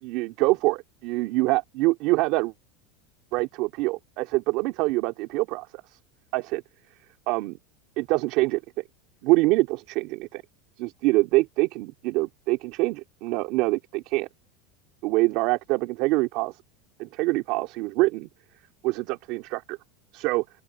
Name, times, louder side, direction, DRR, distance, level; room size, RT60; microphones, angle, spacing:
voice 1, 0.0-2.5 3.3-6.0 6.3-6.6 7.3-7.6 8.0-8.6 9.2-10.4 10.8-14.3 15.0-16.6 17.0-18.3 18.8-19.8 20.1-20.4, right 21 dB, 50° right, 3.0 m, -25 dB
open air
supercardioid pair, 165°, 0 cm